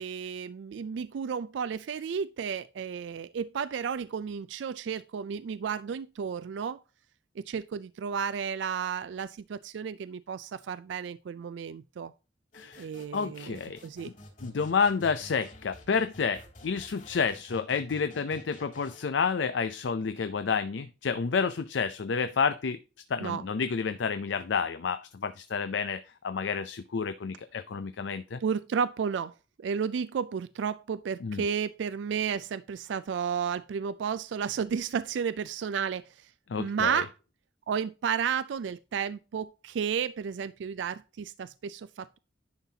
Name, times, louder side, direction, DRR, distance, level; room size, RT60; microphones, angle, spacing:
voice 1, 0.0-6.8 7.4-12.1 12.8-14.1 23.2-23.4 28.4-29.3 29.6-36.3 36.6-37.1 37.7-42.2, right 7 dB, 85° right, 0.3 m, -32 dB
voice 2, 12.5-12.9 13.1-13.8 14.4-22.8 23.1-28.4 31.2-31.4 36.5-37.0, left 5 dB, 80° left, 0.5 m, -30 dB
sound 1, 12.5-19.0, left 1 dB, 40° left, 3.3 m, -51 dB
10.5 x 5.8 x 2.8 m
head